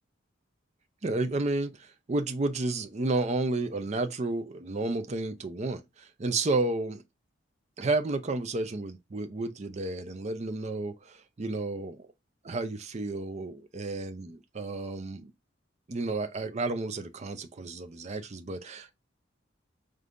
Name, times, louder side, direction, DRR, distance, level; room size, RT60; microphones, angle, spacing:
voice 1, 1.0-7.0 7.8-12.0 12.4-15.3 15.9-18.9, right 2 dB, 35° right, 0.5 m, -31 dB
5.1 x 3.3 x 2.5 m
head